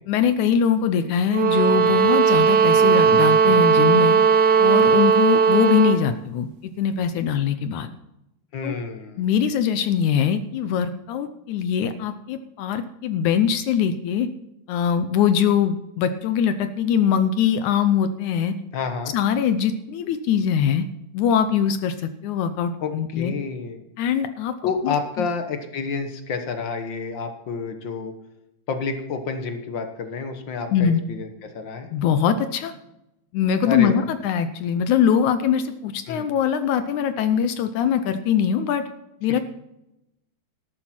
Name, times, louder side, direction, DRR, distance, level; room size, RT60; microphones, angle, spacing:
voice 1, 0.1-4.2 4.6-6.5 6.8-7.9 8.6-8.8 9.2-14.3 14.7-18.6 19.1-20.9 21.1-23.3 24.0-24.5 24.8-25.3 30.7-31.0 31.9-32.7 33.3-38.8 39.2-39.4, left 8 dB, 75° left, 10 dB, 2.0 m, -22 dB
sound 1, 1.3-6.0, right 6 dB, 90° right, 0.9 m, -17 dB
voice 2, 8.5-9.3 18.7-19.1 22.8-23.8 24.6-28.1 28.7-31.9 33.7-34.0 36.1-36.3, left 5 dB, 55° left, 7 dB, 1.4 m, -29 dB
13.5 x 12.5 x 4.4 m, 0.88 s
omnidirectional pair, 3.7 m